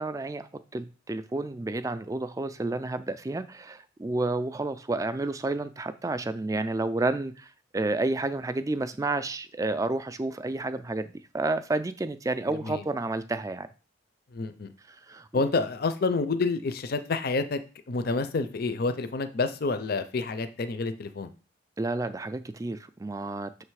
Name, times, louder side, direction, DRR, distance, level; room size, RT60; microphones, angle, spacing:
voice 1, 0.0-13.7 14.9-15.4 21.8-23.5, right 2 dB, 15° right, 12 dB, 0.3 m, -30 dB
voice 2, 14.3-14.7 15.3-17.6 17.9-21.3, left 3 dB, 50° left, 10 dB, 0.5 m, -28 dB
6.6 x 3.2 x 4.7 m, 0.36 s
head